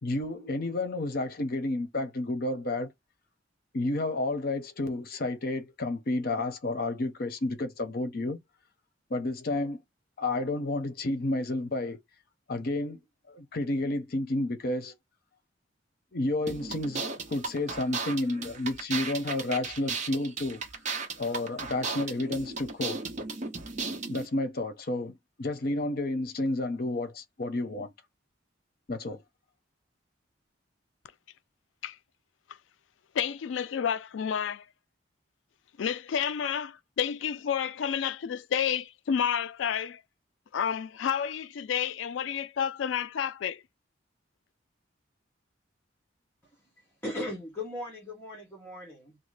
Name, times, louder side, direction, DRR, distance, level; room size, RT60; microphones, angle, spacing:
voice 1, 0.0-2.9 3.7-8.4 9.1-9.8 10.2-12.0 12.5-13.0 13.3-14.9 16.1-20.6 21.2-23.0 24.1-25.1 25.4-27.9 28.9-29.2, left 2 dB, 55° left, 0.7 m, -31 dB
sound 1, 16.5-24.3, right 4 dB, 40° right, 0.8 m, -36 dB
voice 2, 33.1-34.6 35.8-40.0 40.5-43.6, left 8 dB, 85° left, 0.4 m, -30 dB
voice 3, 46.8-49.2, left 1 dB, 10° left, 1.0 m, -38 dB
2.7 x 2.3 x 3.3 m
head